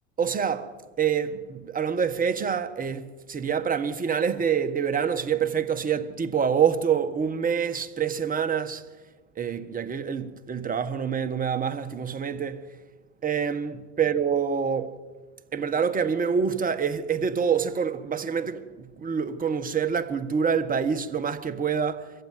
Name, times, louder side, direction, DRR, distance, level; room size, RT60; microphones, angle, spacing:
voice 1, 0.2-8.8 9.4-12.6 13.2-15.0 15.5-22.1, right 7 dB, 20° right, 1.6 m, -26 dB
24.0 x 15.0 x 9.5 m
hypercardioid pair, 105°, 38 cm